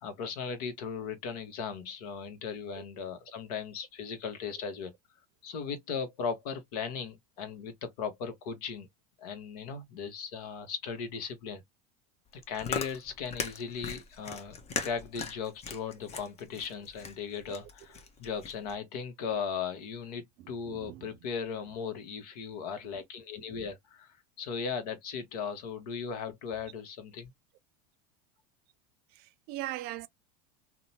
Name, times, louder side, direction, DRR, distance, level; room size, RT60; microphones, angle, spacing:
voice 1, 0.0-4.9 5.4-8.9 9.2-11.6 12.5-27.3, left 6 dB, 70° left, 1.0 m, -37 dB
Chewing mastication, 12.3-18.7, left 5 dB, 30° left, 0.7 m, -39 dB
voice 2, 20.4-21.0 29.2-30.1, right 16 dB, 50° right, 0.5 m, -40 dB
2.8 x 2.2 x 2.6 m
hypercardioid pair, 90°, 21 cm